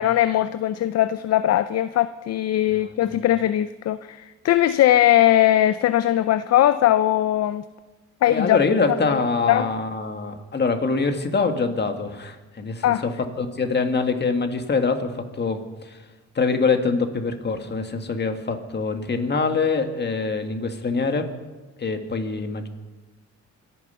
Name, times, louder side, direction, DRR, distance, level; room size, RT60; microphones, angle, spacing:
voice 1, 0.0-7.6 8.2-8.6 9.1-9.2 9.5-9.7 12.8-13.0, left 13 dB, 55° left, 13 dB, 0.6 m, -20 dB
voice 2, 8.3-16.0 16.4-21.3 21.8-22.7, left 4 dB, 35° left, 6 dB, 2.0 m, -24 dB
25.5 x 9.4 x 5.7 m, 1.2 s
cardioid pair, 90°, 30 cm